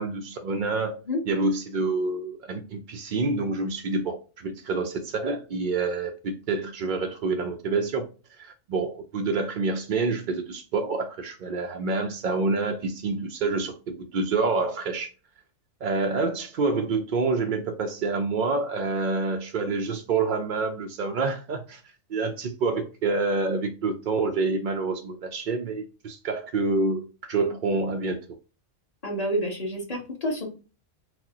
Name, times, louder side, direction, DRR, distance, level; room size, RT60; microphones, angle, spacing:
voice 1, 0.0-0.9 1.3-8.1 8.4-15.1 15.8-21.8 22.1-28.2, right 3 dB, 70° right, 0.4 m, -27 dB
voice 2, 29.0-30.5, equal, 30° left, 1.1 m, -28 dB
6.1 x 2.1 x 2.8 m
omnidirectional pair, 1.4 m